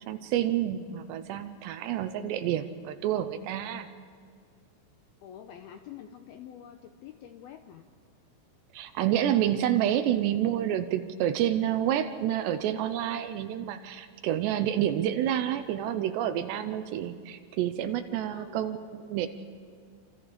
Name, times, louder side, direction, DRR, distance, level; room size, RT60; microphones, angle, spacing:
voice 1, 0.1-3.9 8.7-19.3, right 11 dB, 75° right, 10 dB, 2.7 m, -29 dB
voice 2, 5.2-7.9 18.3-18.7, left 9 dB, 80° left, 6 dB, 2.3 m, -47 dB
28.0 x 27.5 x 5.1 m, 2.2 s
omnidirectional pair, 5.4 m